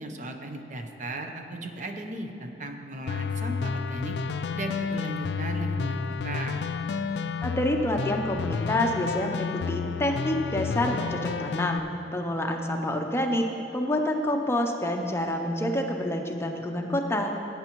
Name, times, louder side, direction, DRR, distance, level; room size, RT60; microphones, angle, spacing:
voice 1, 0.0-4.1 4.5-6.6, right 2 dB, 45° right, 4 dB, 0.7 m, -36 dB
sound 1, 3.1-11.8, left 5 dB, 70° left, 0.3 m, -31 dB
voice 2, 7.4-11.8 12.1-13.5 13.7-17.3, left 1 dB, 15° left, 3 dB, 0.6 m, -27 dB
17.0 x 8.8 x 3.0 m, 2.9 s
head